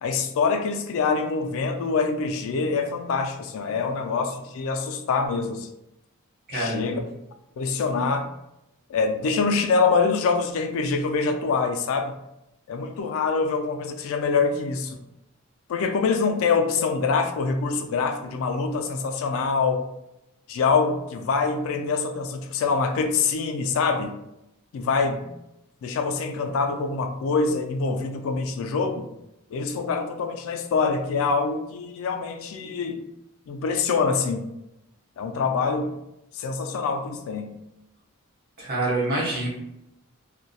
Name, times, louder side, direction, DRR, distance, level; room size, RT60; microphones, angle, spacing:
voice 1, 0.0-5.7 6.5-7.0 7.6-8.3 8.9-12.2 12.7-15.0 15.7-19.8 20.5-24.1 24.7-25.3 25.8-29.1 29.5-33.1 33.5-34.5 35.2-35.9 36.3-37.5, left 4 dB, 65° left, 6 dB, 0.3 m, -25 dB
voice 2, 6.5-7.0 38.6-39.5, right 2 dB, 45° right, -4 dB, 0.8 m, -26 dB
2.2 x 2.1 x 2.7 m, 0.87 s
head